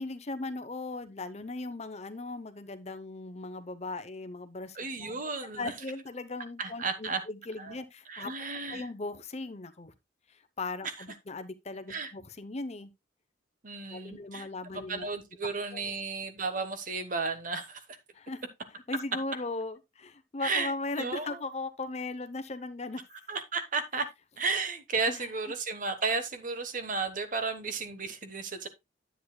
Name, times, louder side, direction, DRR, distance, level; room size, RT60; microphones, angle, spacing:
voice 1, 0.0-5.1 5.4-8.3 8.7-9.9 10.6-12.9 13.9-15.1 15.7-15.8 18.1-18.4 18.9-23.0 25.1-25.3, left 2 dB, 35° left, 0.7 m, -38 dB
voice 2, 4.7-5.7 6.6-7.2 7.6-7.8 8.1-8.9 10.8-10.9 11.9-12.1 13.6-14.5 14.7-18.0 20.4-20.7 21.0-21.4 23.3-24.1 24.4-28.7, right 4 dB, 45° right, 1.1 m, -33 dB
10.0 x 8.1 x 2.3 m
head